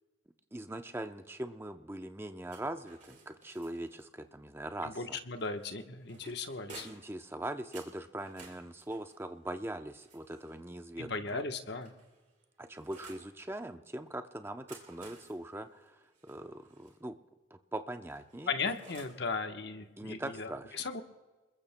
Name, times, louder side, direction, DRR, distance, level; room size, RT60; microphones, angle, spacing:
voice 1, 0.5-5.2 6.2-6.3 6.8-11.4 12.6-17.2 17.5-18.5 20.0-20.7, right 1 dB, 10° right, 7 dB, 0.6 m, -41 dB
sound 1, 2.5-4.0 5.4-7.2 7.7-10.7 11.5-13.3 14.4-17.0 18.1-19.3, right 4 dB, 40° right, 3.2 m, -55 dB
voice 2, 4.8-6.9 11.0-11.9 18.5-21.0, left 4 dB, 60° left, 6 dB, 1.1 m, -37 dB
29.0 x 21.5 x 2.2 m, 1.2 s
head